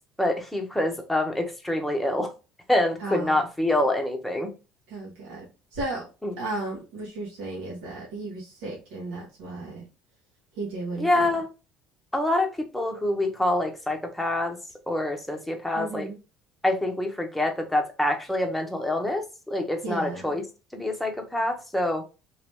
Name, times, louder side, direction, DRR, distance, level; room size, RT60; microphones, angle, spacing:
voice 1, 0.2-2.3 2.7-4.5 11.0-11.5 12.1-14.6 14.9-16.1 16.6-20.4 20.7-22.0, left 1 dB, 5° left, 3 dB, 0.9 m, -26 dB
voice 2, 3.0-3.4 4.9-5.4 5.7-6.1 6.4-9.8 10.5-11.4 15.7-16.2 19.8-20.3, right 2 dB, 80° right, -4 dB, 1.4 m, -34 dB
3.0 x 2.9 x 3.4 m, 0.31 s
cardioid pair, 115°, 2 cm